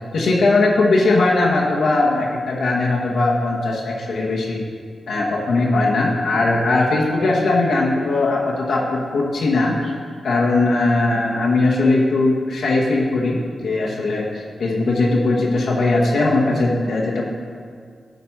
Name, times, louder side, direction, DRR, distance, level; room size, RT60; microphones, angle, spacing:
voice 1, 0.1-4.6 5.1-9.9 10.2-17.3, left 2 dB, 80° left, -3 dB, 1.2 m, -19 dB
9.2 x 4.2 x 5.7 m, 2.1 s
cardioid pair, 60°, 0 cm